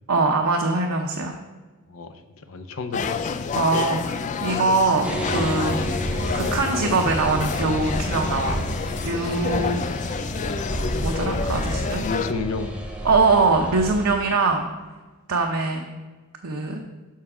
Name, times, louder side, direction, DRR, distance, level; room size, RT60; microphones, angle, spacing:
voice 1, 0.1-1.3 3.5-6.0 6.3-8.7 9.0-9.8 10.7-12.1 13.0-14.7 15.3-15.8 16.4-16.8, right 3 dB, 85° right, 1 dB, 0.7 m, -22 dB
voice 2, 1.9-3.4 12.0-12.8, left 4 dB, 65° left, 8 dB, 0.7 m, -31 dB
sound 1, 2.9-12.3, left 5 dB, 35° left, 0.3 m, -29 dB
sound 2, 5.0-14.1, equal, 5° right, 0.9 m, -30 dB
7.4 x 5.9 x 4.9 m, 1.3 s
head